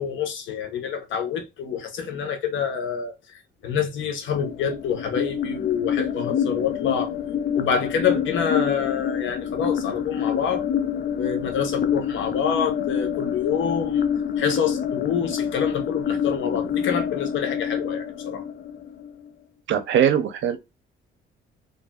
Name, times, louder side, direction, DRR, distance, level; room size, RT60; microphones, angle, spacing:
voice 1, 0.0-7.1 7.5-10.7 11.2-14.0 14.4-18.4, left 7 dB, 75° left, 0.9 m, -27 dB
sound 1, 4.3-19.3, left 8 dB, 55° left, 0.5 m, -27 dB
voice 2, 19.7-20.6, right 9 dB, 70° right, 0.6 m, -21 dB
2.6 x 2.5 x 2.3 m
cardioid pair, 90°, 20 cm